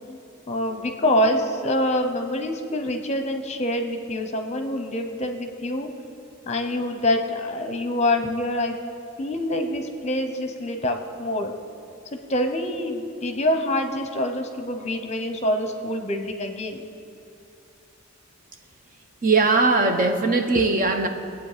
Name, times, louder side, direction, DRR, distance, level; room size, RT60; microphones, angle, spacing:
voice 1, 0.5-5.9 6.5-8.7 9.2-11.5 12.1-16.8, left 1 dB, 30° left, 5 dB, 1.0 m, -26 dB
voice 2, 19.2-21.1, right 3 dB, 40° right, 5 dB, 0.9 m, -20 dB
21.5 x 8.3 x 5.1 m, 2.7 s
head